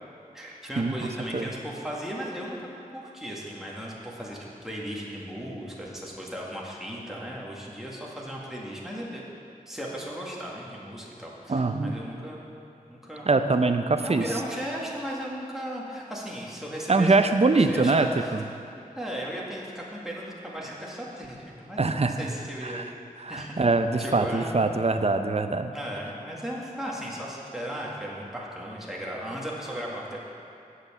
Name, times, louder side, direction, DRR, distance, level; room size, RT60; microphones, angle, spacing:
voice 1, 0.3-9.2 9.7-12.5 12.9-13.4 14.0-18.4 18.9-22.9 23.3-23.6 24.0-24.6 25.7-30.3, equal, 5° right, -4 dB, 1.9 m, -36 dB
voice 2, 11.5-12.0 13.3-14.3 16.9-18.4 21.8-22.2 22.6-22.9 23.2-25.7, right 3 dB, 45° right, 8 dB, 0.6 m, -23 dB
8.1 x 8.0 x 7.2 m, 2.6 s
wide cardioid pair, 65°, 15 cm